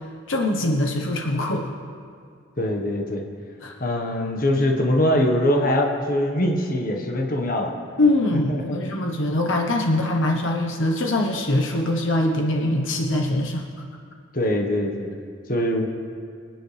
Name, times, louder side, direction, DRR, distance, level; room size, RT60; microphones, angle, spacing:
voice 1, 0.3-1.7 3.6-3.7 8.0-13.6, left 1 dB, 65° left, 1 dB, 1.1 m, -23 dB
voice 2, 2.6-3.2 3.8-7.7 8.3-8.8 14.3-15.2 15.5-15.9, left 1 dB, 45° left, 1 dB, 1.3 m, -23 dB
24.5 x 9.4 x 3.4 m, 2.2 s
head